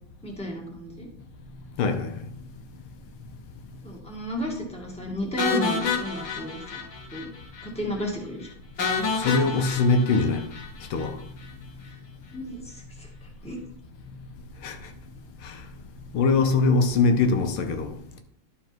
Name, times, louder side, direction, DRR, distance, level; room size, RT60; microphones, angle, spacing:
voice 1, 0.2-1.1 3.8-6.8 7.1-7.3 7.6-8.5 12.3-13.1 13.4-13.6, equal, 5° left, 1.7 m, -33 dB
voice 2, 1.8-2.1 9.2-10.4 10.9-11.2 14.6-14.8 16.1-17.9, left 3 dB, 85° left, 1.8 m, -22 dB
sound 1, 5.4-7.3 7.5-7.7 8.0-8.1 8.8-11.1, left 5 dB, 60° left, 1.6 m, -29 dB
12.0 x 4.7 x 4.4 m
omnidirectional pair, 2.3 m